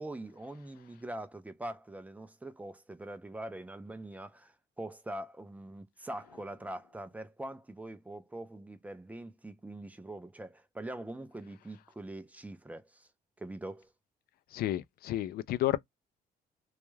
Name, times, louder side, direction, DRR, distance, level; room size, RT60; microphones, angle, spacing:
voice 1, 0.0-13.1 13.4-13.9, right 1 dB, 10° right, 0.4 m, -43 dB
voice 2, 14.5-15.8, left 14 dB, 65° left, 0.4 m, -31 dB
2.3 x 2.1 x 3.1 m
cardioid pair, 110°, 17 cm